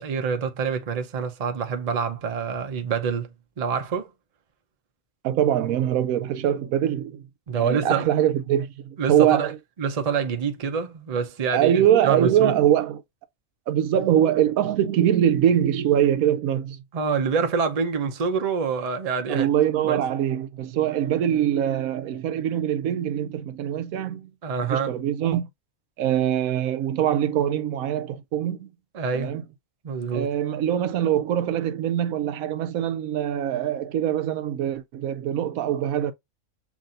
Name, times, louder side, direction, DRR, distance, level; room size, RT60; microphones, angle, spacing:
voice 1, 0.0-4.1 7.5-8.1 9.0-9.5 9.8-12.5 16.9-19.5 19.8-20.0 24.4-25.0 28.9-29.4 29.8-30.3, right 6 dB, 40° right, 0.6 m, -26 dB
voice 2, 5.2-7.2 7.5-9.5 11.5-13.0 13.7-16.8 19.3-24.3 24.7-25.5 26.0-28.7 29.1-29.4 30.1-36.1, right 10 dB, 80° right, 1.0 m, -23 dB
7.2 x 2.7 x 2.5 m
omnidirectional pair, 1.5 m